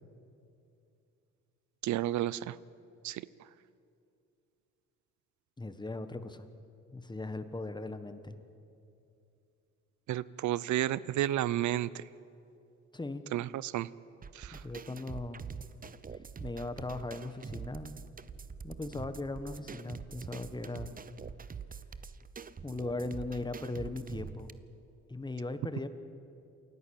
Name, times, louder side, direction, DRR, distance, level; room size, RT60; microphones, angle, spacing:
voice 1, 1.8-2.6 3.0-3.3 10.1-12.0 13.3-13.9 14.3-14.6, right 13 dB, 70° right, 19 dB, 0.6 m, -31 dB
voice 2, 5.6-6.5 6.9-8.4 12.9-13.2 14.5-15.5 16.4-18.0 18.6-20.9 22.6-24.5 25.1-25.9, left 2 dB, 15° left, 10 dB, 1.4 m, -38 dB
sound 1, 14.2-24.5, right 6 dB, 30° right, 0.7 m, -45 dB
28.0 x 11.0 x 8.9 m, 2.6 s
cardioid pair, 90°, 30 cm